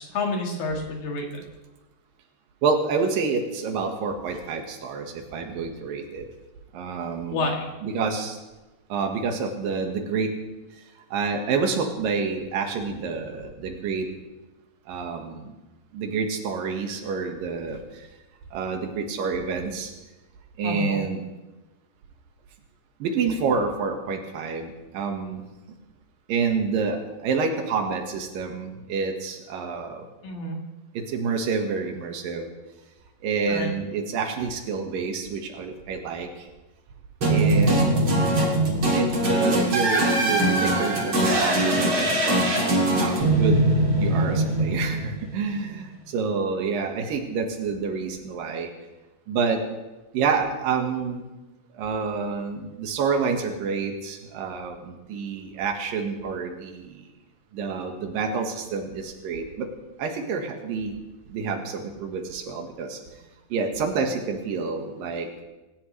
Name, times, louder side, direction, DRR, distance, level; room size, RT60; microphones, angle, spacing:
voice 1, 0.0-1.4 7.3-7.7 20.6-21.0 30.2-30.6 33.5-33.7, left 2 dB, 75° left, 0 dB, 3.8 m, -29 dB
voice 2, 2.6-6.2 6.7-7.5 7.8-8.4 8.9-10.3 11.1-14.1 14.9-15.5 15.9-17.8 18.5-19.9 20.6-21.3 23.0-25.4 26.3-30.0 31.1-32.5 33.2-36.3 37.3-38.2 38.9-43.6 44.0-48.7 49.3-49.6 50.1-51.2 51.8-57.0 57.5-59.7 60.0-60.9 61.3-63.0 63.5-65.3, right 5 dB, 75° right, 3 dB, 3.3 m, -28 dB
sound 1, 37.2-45.4, right 1 dB, 35° right, 3.5 m, -21 dB
27.0 x 14.5 x 3.3 m, 1.1 s
omnidirectional pair, 4.1 m